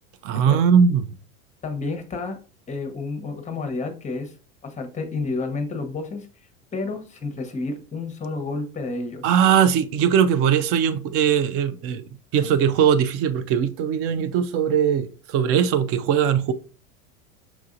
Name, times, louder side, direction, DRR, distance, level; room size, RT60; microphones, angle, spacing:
voice 1, 0.2-1.0 9.2-12.0 12.3-16.5, right 8 dB, 35° right, 0.4 m, -20 dB
voice 2, 1.6-2.4 2.7-4.3 4.6-6.3 6.7-9.2, left 3 dB, 15° left, 0.8 m, -30 dB
5.9 x 2.6 x 2.5 m
hypercardioid pair, 100°, 42 cm